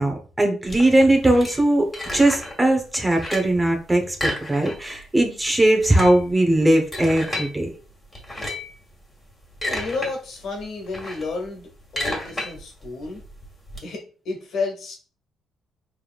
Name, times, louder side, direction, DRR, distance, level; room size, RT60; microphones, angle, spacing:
voice 1, 0.0-7.7, right 1 dB, 15° right, 3 dB, 1.0 m, -19 dB
sound 1, 0.7-2.6 2.9-3.6 4.1-5.0 5.3-5.4 5.7-7.5 8.1-8.8 9.3-10.1 10.5-13.8, left 1 dB, 20° left, 2.0 m, -32 dB
voice 2, 9.6-13.2 13.8-14.9, left 3 dB, 70° left, 1 dB, 1.5 m, -31 dB
4.6 x 3.5 x 2.4 m, 0.38 s
cardioid pair, 95°, 0 cm